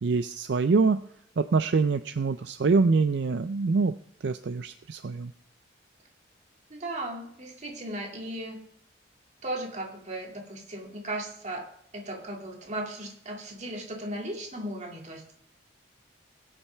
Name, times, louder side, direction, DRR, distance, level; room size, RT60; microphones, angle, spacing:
voice 1, 0.0-1.0 1.4-4.0 4.2-5.3, right 4 dB, 65° right, 11 dB, 0.4 m, -25 dB
voice 2, 6.7-8.6 9.4-11.7 11.9-15.3, right 1 dB, 40° right, 1 dB, 2.4 m, -36 dB
20.5 x 8.7 x 3.4 m, 0.68 s
head